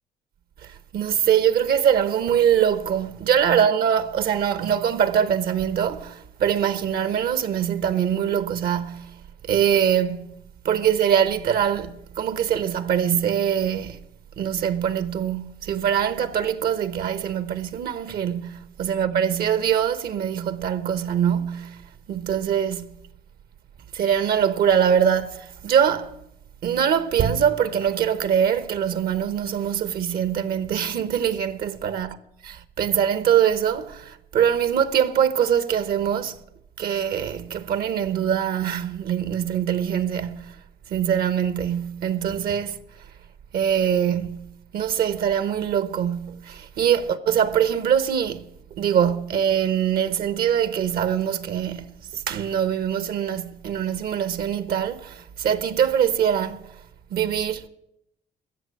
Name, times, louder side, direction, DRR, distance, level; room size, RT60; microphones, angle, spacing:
voice 1, 0.6-10.3 10.6-14.0 14.4-22.9 23.9-26.2 26.6-32.1 32.5-36.4 36.8-40.6 40.9-42.8 43.5-56.7 57.1-57.7, right 9 dB, 65° right, 1.0 m, -23 dB
15.0 x 7.1 x 9.7 m
cardioid pair, 110°, 17 cm